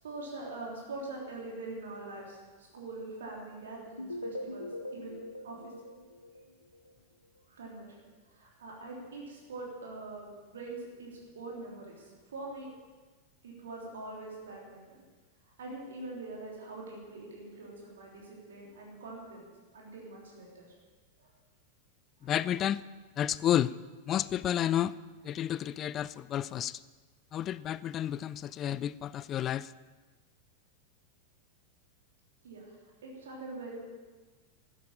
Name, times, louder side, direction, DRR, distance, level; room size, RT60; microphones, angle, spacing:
voice 1, 0.0-5.7 7.5-7.9 8.3-12.7 13.4-15.0 15.6-19.5 19.7-20.7 21.2-21.3 22.2-22.3 32.4-32.8 33.0-33.8, right 2 dB, 65° right, 3.3 m, -44 dB
sound 1, 4.0-6.9, left 1 dB, 85° left, 0.9 m, -42 dB
voice 2, 22.2-22.8 23.2-23.7 24.1-24.9 25.2-26.8 27.3-29.7, left 11 dB, 30° left, 0.4 m, -31 dB
13.0 x 10.0 x 8.9 m
figure-of-eight pair, 90°, 0 cm